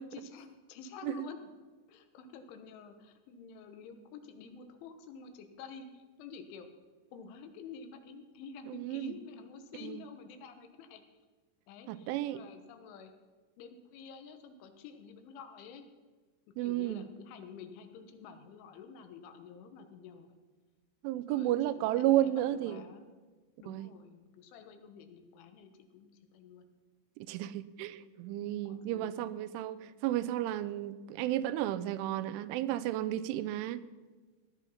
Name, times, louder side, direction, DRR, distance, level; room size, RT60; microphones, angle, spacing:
voice 1, 0.1-1.5 1.9-6.7 7.1-11.1 11.7-13.1 13.6-15.9 16.5-20.4 21.3-23.1 23.6-26.7 28.7-29.4, left 6 dB, 80° left, 7 dB, 3.6 m, -50 dB
voice 2, 8.7-9.1 9.8-10.0 11.9-12.4 16.6-17.0 21.0-22.8 23.7-23.9 27.2-33.8, right 13 dB, 90° right, 15 dB, 3.1 m, -32 dB
16.0 x 11.0 x 5.6 m, 1.3 s
omnidirectional pair, 5.4 m